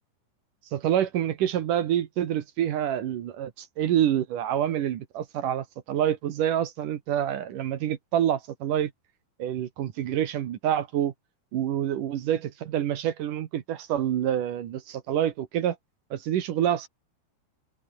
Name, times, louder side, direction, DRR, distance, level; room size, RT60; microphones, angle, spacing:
voice 1, 0.7-8.9 9.4-11.1 11.5-15.8 16.1-16.9, right 10 dB, 65° right, 2.7 m, -27 dB
omnidirectional pair, 4.4 m